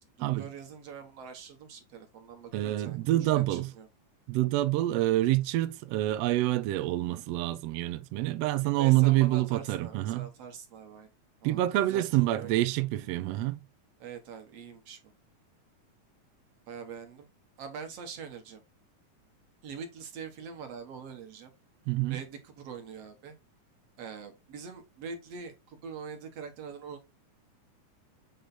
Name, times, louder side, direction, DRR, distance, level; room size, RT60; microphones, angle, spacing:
voice 1, 0.2-3.0 3.3-3.9 8.8-11.1 11.4-11.6 11.9-12.5 14.0-15.0 16.7-17.3 17.6-18.6 19.6-21.5 22.1-23.4 24.0-27.1, right 6 dB, 60° right, 2.1 m, -43 dB
voice 2, 2.5-3.7 4.3-10.3 11.4-13.6 21.9-22.2, right 16 dB, 85° right, 1.4 m, -27 dB
7.9 x 3.3 x 4.0 m
omnidirectional pair, 3.5 m